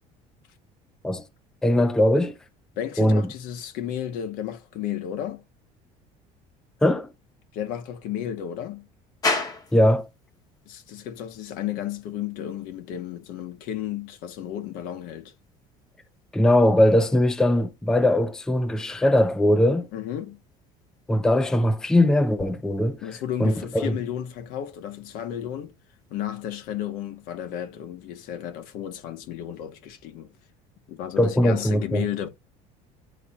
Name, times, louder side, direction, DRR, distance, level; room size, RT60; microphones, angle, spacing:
voice 1, 1.6-2.4 3.0-3.2 6.8-7.1 9.7-10.0 16.3-19.9 21.1-23.0 23.4-23.9 31.2-32.1, left 1 dB, 5° left, 0.4 m, -20 dB
voice 2, 2.8-5.4 7.5-8.9 10.7-15.3 19.9-20.4 23.0-25.7 26.1-30.3 30.9-32.3, left 10 dB, 70° left, 1.2 m, -33 dB
sound 1, 9.2-26.7, left 3 dB, 25° left, 1.0 m, -40 dB
10.5 x 4.2 x 2.4 m
cardioid pair, 160°, 15 cm